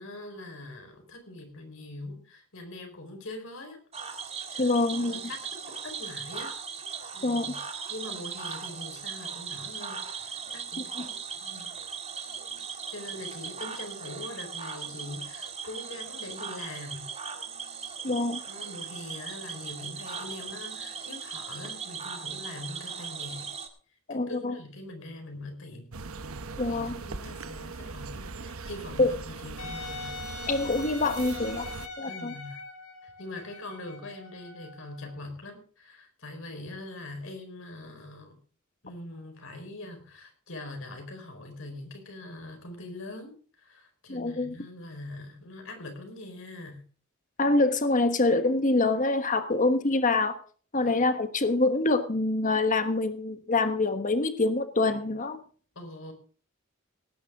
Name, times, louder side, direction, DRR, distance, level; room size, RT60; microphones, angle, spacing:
voice 1, 0.0-3.8 4.5-5.5 5.8-6.6 7.1-7.6 7.9-11.7 12.7-17.1 18.5-23.5 24.1-25.9 26.6-30.2 32.1-32.6 33.0-38.4 38.8-46.8 50.8-51.0 55.7-56.1, left 2 dB, 65° left, 4 dB, 4.6 m, -43 dB
Cricket / Frog, 3.9-23.7, right 6 dB, 30° right, 1.8 m, -38 dB
voice 2, 4.6-5.2 7.2-7.5 11.0-11.1 18.0-18.4 24.1-24.6 26.6-27.0 29.0-29.1 30.5-31.6 32.0-32.3 44.1-44.5 47.4-50.4 50.7-55.4, left 2 dB, 40° left, 9 dB, 1.3 m, -25 dB
sound 1, 25.9-31.9, right 4 dB, 80° right, 1.0 m, -40 dB
Wind instrument woodwind instrument, 29.6-35.2, left 4 dB, 85° left, 3.9 m, -42 dB
18.5 x 10.5 x 3.7 m, 0.42 s
head